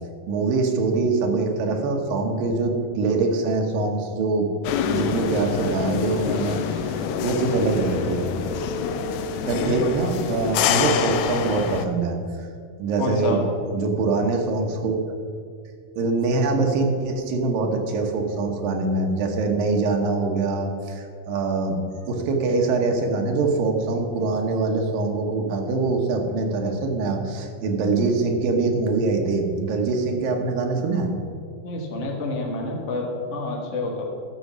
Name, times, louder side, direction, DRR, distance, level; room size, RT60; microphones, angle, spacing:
voice 1, 0.3-4.6 4.9-8.3 9.5-12.2 12.8-13.4 13.7-15.0 16.0-21.8 22.1-31.1, right 3 dB, 85° right, 2 dB, 2.9 m, -24 dB
sound 1, 4.6-11.9, left 8 dB, 80° left, 2.0 m, -26 dB
voice 2, 9.6-10.0 13.0-13.5 31.6-34.0, left 2 dB, 60° left, 0 dB, 0.7 m, -28 dB
13.0 x 6.7 x 6.1 m, 2.2 s
omnidirectional pair, 3.9 m